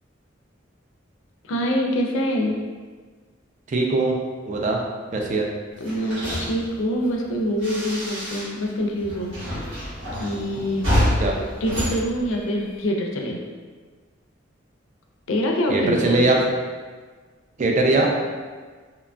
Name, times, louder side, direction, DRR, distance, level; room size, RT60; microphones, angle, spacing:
voice 1, 1.4-2.5 5.8-9.7 10.2-10.9 11.4-13.4 15.3-16.2, equal, 85° left, 1 dB, 0.4 m, -25 dB
voice 2, 3.7-4.1 4.5-4.8 5.1-5.4 11.2-11.3 15.7-16.4 17.6-18.1, right 2 dB, 40° right, 0 dB, 0.3 m, -20 dB
sound 1, 5.8-8.7 9.0-12.9, equal, 75° right, 1.1 m, -28 dB
2.8 x 2.2 x 2.5 m, 1.5 s
head